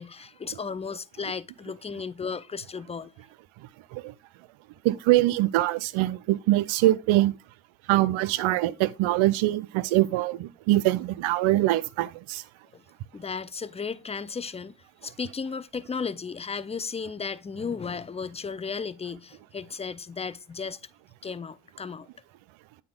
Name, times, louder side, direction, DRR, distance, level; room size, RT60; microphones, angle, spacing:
voice 1, 0.0-3.1 12.7-12.8 13.1-14.7 15.0-20.8 21.2-22.1, left 5 dB, 15° left, 0.4 m, -35 dB
voice 2, 4.8-7.4 7.9-12.4, right 16 dB, 75° right, 0.6 m, -23 dB
8.6 x 4.2 x 3.7 m
hypercardioid pair, 50°, 49 cm